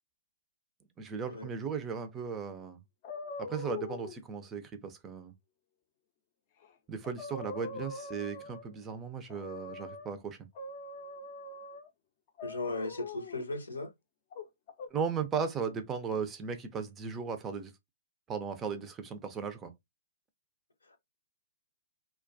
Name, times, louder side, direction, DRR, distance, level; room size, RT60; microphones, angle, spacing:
voice 1, 1.0-2.8 3.4-5.3 6.9-10.4 14.9-17.7 18.3-19.7, right 6 dB, 20° right, 0.4 m, -36 dB
sound 1, 3.0-4.2 6.6-6.7 7.0-8.7 9.3-10.1 10.5-11.9 12.4-13.4 14.3-14.9, left 3 dB, 40° left, 0.5 m, -42 dB
voice 2, 12.4-13.9, left 2 dB, 85° left, 0.7 m, -36 dB
2.2 x 2.2 x 2.5 m
hypercardioid pair, 125°, 0 cm